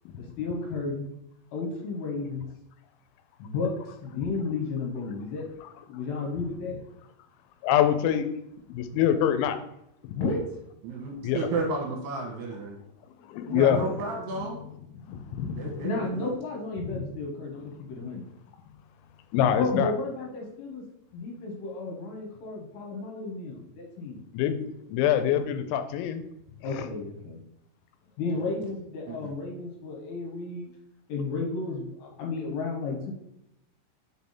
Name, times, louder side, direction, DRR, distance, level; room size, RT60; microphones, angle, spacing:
voice 1, 0.2-1.1 1.5-2.5 3.4-5.5 5.9-6.8 10.1-10.4 13.5-14.0 15.8-18.3 19.6-20.8 21.1-24.2 26.6-27.4 28.2-30.7 31.1-33.1, left 3 dB, 70° left, -1 dB, 3.1 m, -33 dB
voice 2, 7.6-8.3 8.7-9.6 11.2-11.4 13.3-13.9 15.1-15.7 16.9-17.0 19.3-19.9 24.3-24.5 24.8-26.2, left 10 dB, 85° left, 9 dB, 3.0 m, -24 dB
voice 3, 10.8-12.8 13.5-14.6 15.6-16.3 28.3-28.4 29.1-29.2, right 3 dB, 75° right, 0 dB, 2.9 m, -32 dB
6.5 x 3.5 x 4.2 m, 0.81 s
omnidirectional pair, 5.3 m